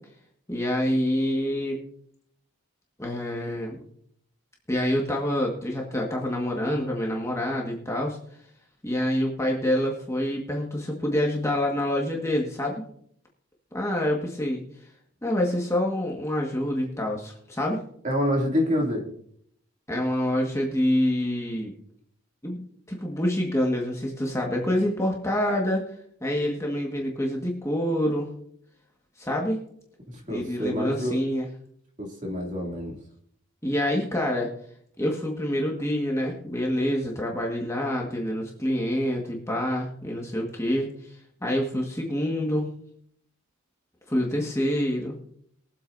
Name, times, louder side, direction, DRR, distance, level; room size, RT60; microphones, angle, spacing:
voice 1, 0.5-1.8 3.0-3.8 4.7-8.2 8.8-12.8 13.7-14.6 15.2-17.8 19.9-21.7 22.4-22.6 22.9-25.8 26.2-28.3 29.2-29.6 30.3-31.5 33.6-34.5 35.0-40.9 41.4-42.7 44.1-45.2, left 1 dB, 15° left, -1 dB, 1.6 m, -26 dB
voice 2, 18.0-19.1 30.1-31.2 32.0-33.0, equal, 35° right, 0 dB, 2.7 m, -27 dB
22.5 x 8.2 x 2.7 m, 0.66 s
head